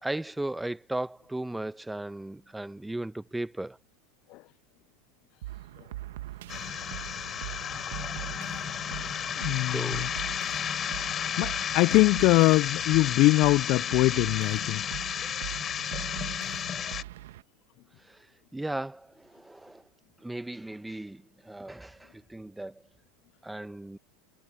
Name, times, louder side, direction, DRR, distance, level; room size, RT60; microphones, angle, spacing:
voice 1, 0.0-3.8 9.5-10.1 18.1-18.2 18.5-19.8 20.2-22.7 23.4-24.0, right 1 dB, 5° right, 1.1 m, -36 dB
sound 1, 5.4-17.4, right 15 dB, 75° right, 1.3 m, -41 dB
sound 2, 6.5-17.0, left 9 dB, 35° left, 4.7 m, -33 dB
voice 2, 9.4-10.1 11.4-14.8, left 21 dB, 55° left, 0.4 m, -23 dB
hypercardioid pair, 90°, 0 cm